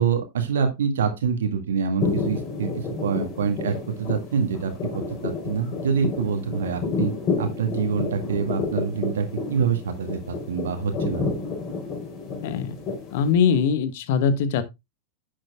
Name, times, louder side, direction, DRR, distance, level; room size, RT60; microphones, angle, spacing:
voice 1, 0.0-7.1 7.4-11.3, right 6 dB, 60° right, 1.9 m, -26 dB
sound 1, 2.0-13.3, left 4 dB, 35° left, 4.0 m, -30 dB
voice 2, 12.4-12.8 13.1-14.6, left 6 dB, 50° left, 1.4 m, -22 dB
11.0 x 8.9 x 2.3 m
figure-of-eight pair, 90°, 0 cm